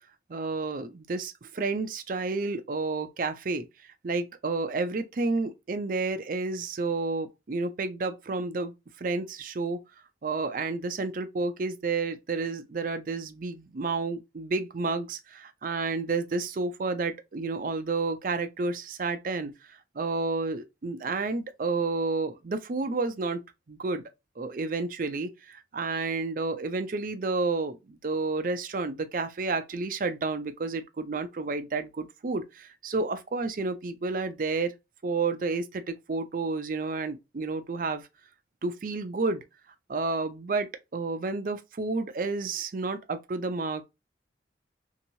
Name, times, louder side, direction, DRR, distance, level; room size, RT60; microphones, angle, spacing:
voice 1, 0.3-3.7 4.0-9.8 10.2-23.4 23.7-24.0 24.4-34.7 35.0-38.1 38.6-39.4 39.9-43.8, right 3 dB, 50° right, 0.4 m, -30 dB
2.9 x 2.7 x 2.7 m
head